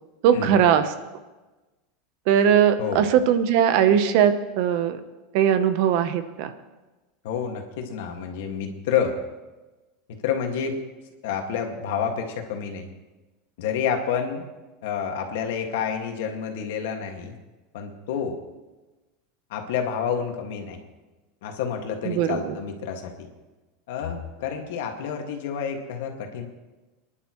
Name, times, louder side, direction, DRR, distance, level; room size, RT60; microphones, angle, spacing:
voice 1, 0.2-0.9 2.3-5.0 5.3-6.5 22.0-22.6, right 9 dB, 50° right, 10 dB, 0.9 m, -20 dB
voice 2, 7.2-9.2 10.1-10.8 11.2-12.9 13.6-14.4 14.8-17.4 17.7-18.4 19.5-20.8 21.4-23.3 23.9-26.5, left 7 dB, 65° left, 3 dB, 2.0 m, -29 dB
26.5 x 11.0 x 3.1 m, 1.1 s
supercardioid pair, 175°, 0 cm